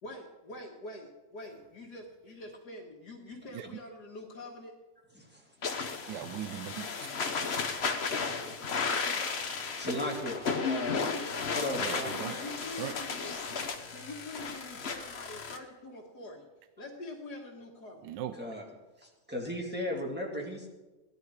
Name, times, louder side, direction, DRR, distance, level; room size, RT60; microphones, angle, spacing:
voice 1, 0.0-4.8 8.1-9.4 10.5-11.3 12.3-13.4 13.9-16.5 16.8-18.2, left 2 dB, 70° left, -1 dB, 2.1 m, -45 dB
sound 1, 5.6-15.6, left 5 dB, 45° left, 1.1 m, -34 dB
voice 2, 6.1-7.2 11.8-12.3 12.7-12.9 18.0-18.4, right 11 dB, 85° right, 11 dB, 1.2 m, -39 dB
voice 3, 9.8-10.6 11.5-12.3 18.4-18.6 19.0-20.7, left 1 dB, 5° right, -2 dB, 2.4 m, -36 dB
16.5 x 11.0 x 4.8 m, 1.1 s
omnidirectional pair, 1.9 m